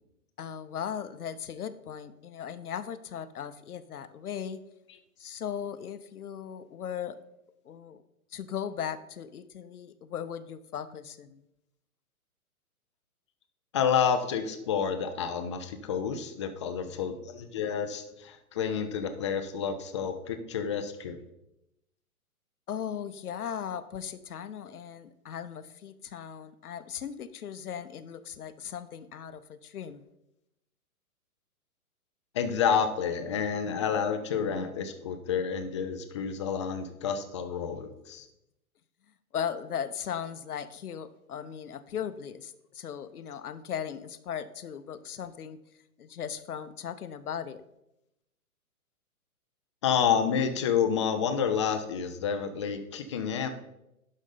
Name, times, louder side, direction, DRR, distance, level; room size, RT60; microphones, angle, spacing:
voice 1, 0.4-4.6 5.2-7.2 7.6-8.0 8.3-11.4 16.9-17.1 22.7-30.0 39.3-45.6 46.0-47.6, left 8 dB, 75° left, 12 dB, 0.8 m, -38 dB
voice 2, 13.7-21.2 32.3-38.3 49.8-53.5, left 7 dB, 20° left, 8 dB, 0.4 m, -29 dB
11.5 x 5.3 x 3.8 m, 0.86 s
hypercardioid pair, 125°, 45 cm